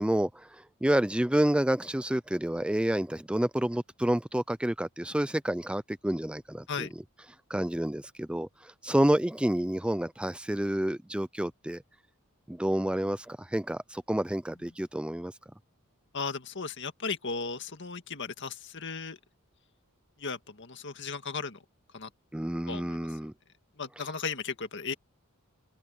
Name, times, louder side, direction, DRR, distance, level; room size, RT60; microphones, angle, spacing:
voice 1, 0.0-6.9 7.5-11.8 12.5-15.3 22.3-23.3, right 1 dB, 5° right, 0.4 m, -29 dB
voice 2, 16.1-19.2 20.2-21.6 21.9-22.1 22.7-23.1 23.8-24.9, left 5 dB, 60° left, 1.9 m, -36 dB
head